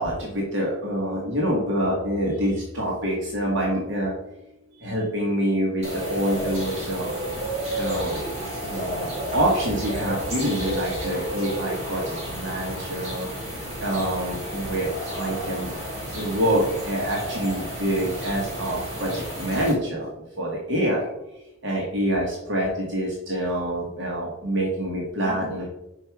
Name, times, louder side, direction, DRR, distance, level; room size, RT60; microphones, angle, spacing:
voice 1, 0.0-4.3 4.8-7.1 7.7-8.2 8.6-13.3 13.8-15.7 16.1-20.1 20.4-21.1 21.6-25.7, right 1 dB, 55° right, -3 dB, 1.4 m, -26 dB
sound 1, 5.8-19.7, equal, 30° right, 2.3 m, -32 dB
5.6 x 4.6 x 5.9 m, 0.89 s
head